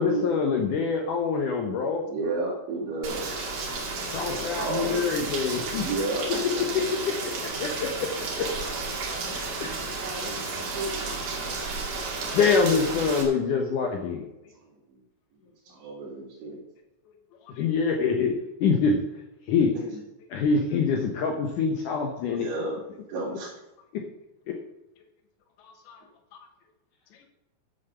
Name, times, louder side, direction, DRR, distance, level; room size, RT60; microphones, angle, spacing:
voice 1, 0.0-2.0 4.1-5.9 7.0-8.7 9.6-9.7 12.3-14.2 17.6-18.3 18.6-19.0 19.5-19.7 20.3-22.5 23.9-24.0 24.5-24.6, left 5 dB, 70° left, 2 dB, 2.1 m, -25 dB
voice 2, 2.1-3.3 4.3-5.0 5.8-6.9 9.5-11.2 14.5-14.6 14.9-15.0 15.6-16.6 19.9-20.0 22.4-22.8 23.1-23.5, right 3 dB, 80° right, -6 dB, 5.0 m, -32 dB
Rain, 3.0-13.2, right 3 dB, 60° right, 4.2 m, -32 dB
voice 3, 4.0-4.3 9.4-9.5 12.0-12.4 17.1-17.2 17.4-17.6 25.6-26.5 27.1-27.3, left 6 dB, 90° left, 5 dB, 3.8 m, -52 dB
11.5 x 7.5 x 6.9 m, 0.94 s
omnidirectional pair, 5.0 m